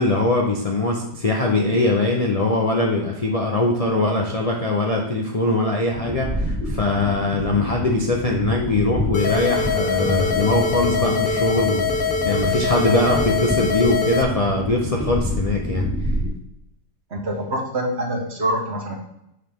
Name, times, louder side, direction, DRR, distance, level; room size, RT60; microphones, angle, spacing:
voice 1, 0.0-15.9, left 2 dB, 75° left, -1 dB, 0.3 m, -22 dB
sound 1, 5.9-16.3, equal, 5° right, 2.4 m, -28 dB
sound 2, 9.1-14.2, left 5 dB, 45° left, 0.8 m, -23 dB
voice 2, 17.1-18.9, right 1 dB, 40° right, 1 dB, 1.4 m, -25 dB
6.6 x 5.5 x 3.5 m, 0.81 s
omnidirectional pair, 1.8 m